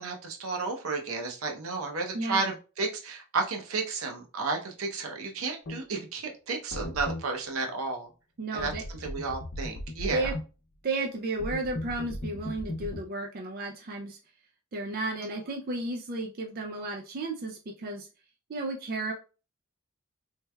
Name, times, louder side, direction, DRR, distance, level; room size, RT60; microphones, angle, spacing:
voice 1, 0.0-8.1 8.5-10.3, right 4 dB, 80° right, 2 dB, 0.7 m, -32 dB
voice 2, 2.1-2.5 8.4-8.8 10.1-10.3 10.8-14.2 14.7-18.1 18.5-19.1, right 2 dB, 45° right, 1 dB, 0.4 m, -33 dB
sound 1, 5.7-5.8 6.7-7.3 8.6-10.4 11.4-13.0, left 1 dB, 55° left, 0.6 m, -36 dB
3.2 x 3.2 x 2.2 m, 0.34 s
head